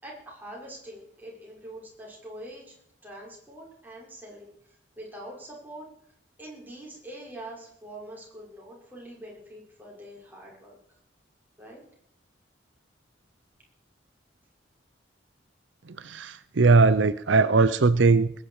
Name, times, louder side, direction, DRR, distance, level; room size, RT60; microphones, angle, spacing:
voice 1, 0.0-5.9 6.4-10.8 11.6-11.8, right 1 dB, 10° right, -3 dB, 6.1 m, -44 dB
voice 2, 15.8-18.3, right 4 dB, 75° right, 14 dB, 0.7 m, -20 dB
20.5 x 10.0 x 4.9 m, 0.70 s
head